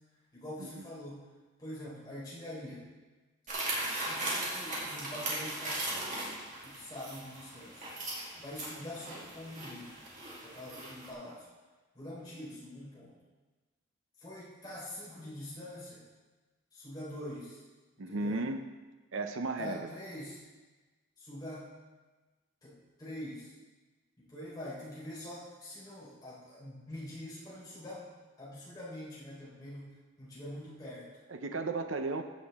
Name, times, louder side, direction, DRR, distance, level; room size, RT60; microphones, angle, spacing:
voice 1, 0.3-1.3 1.6-2.9 4.1-6.3 6.6-7.9 8.3-9.9 10.4-11.5 11.9-13.2 14.2-16.0 16.7-17.6 18.1-18.4 19.6-20.4 21.2-21.7 22.6-23.5 24.2-28.1 28.4-29.9 30.2-31.2, left 1 dB, 20° left, -7 dB, 3.9 m, -44 dB
sound 1, 3.5-11.1, right 1 dB, 40° right, 2.4 m, -38 dB
voice 2, 18.0-18.6 19.1-19.9 31.3-32.2, right 3 dB, 75° right, 6 dB, 0.7 m, -34 dB
15.0 x 7.6 x 3.5 m, 1.3 s
head